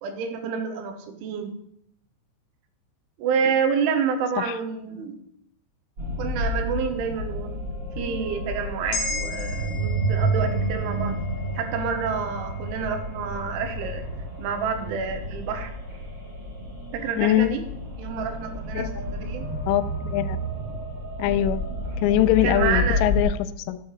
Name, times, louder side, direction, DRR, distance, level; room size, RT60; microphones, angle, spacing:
voice 1, 0.0-1.6 3.2-5.2 6.2-7.5 8.0-11.2 11.6-14.0 14.4-15.7 16.9-17.7 18.0-19.4 22.4-23.0, right 6 dB, 85° right, 6 dB, 3.4 m, -28 dB
sound 1, 6.0-23.2, right 1 dB, 30° right, 3.6 m, -30 dB
sound 2, 8.9-13.4 13.8-13.9, left 3 dB, 70° left, 2.1 m, -37 dB
voice 2, 17.2-17.5 18.8-18.9 19.7-20.4 21.2-21.6 22.0-23.8, left 13 dB, 85° left, 13 dB, 3.0 m, -22 dB
12.0 x 8.4 x 3.2 m, 0.72 s
omnidirectional pair, 5.6 m